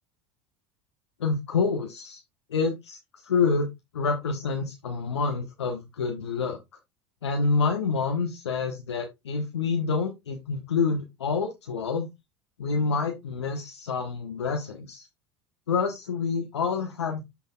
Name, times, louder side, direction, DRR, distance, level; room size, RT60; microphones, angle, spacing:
voice 1, 1.2-2.2 2.5-3.0 3.2-6.6 7.2-12.1 12.6-15.1 15.7-17.2, left 4 dB, 75° left, 3 dB, 1.1 m, -27 dB
12.5 x 4.4 x 2.3 m, 0.20 s
figure-of-eight pair, 75°, 14 cm